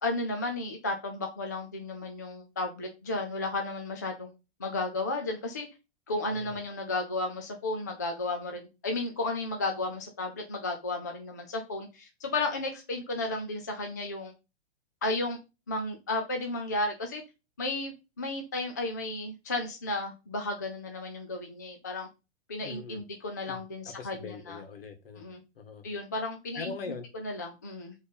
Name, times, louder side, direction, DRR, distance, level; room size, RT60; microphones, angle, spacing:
voice 1, 0.0-4.3 4.6-5.7 6.1-14.3 15.0-15.4 15.7-17.2 17.6-22.1 22.5-24.6 25.2-25.4 25.8-26.7 27.2-27.9, left 2 dB, 15° left, 3 dB, 0.4 m, -33 dB
voice 2, 22.6-23.0 23.5-25.2 25.6-25.9 26.6-27.1, left 4 dB, 55° left, 7 dB, 2.2 m, -42 dB
7.7 x 3.9 x 5.4 m, 0.28 s
hypercardioid pair, 180°, 34 cm